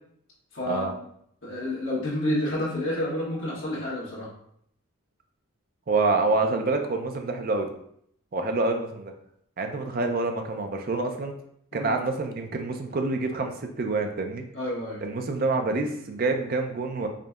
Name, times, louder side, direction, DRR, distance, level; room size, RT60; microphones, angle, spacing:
voice 1, 0.5-0.9 1.4-4.3 11.7-11.9 14.5-15.0, left 1 dB, 65° left, -7 dB, 1.2 m, -29 dB
voice 2, 5.9-7.7 8.3-9.1 9.6-11.3 11.7-14.4 15.0-17.1, right 3 dB, 45° right, 5 dB, 0.4 m, -27 dB
4.9 x 2.7 x 2.3 m, 0.70 s
head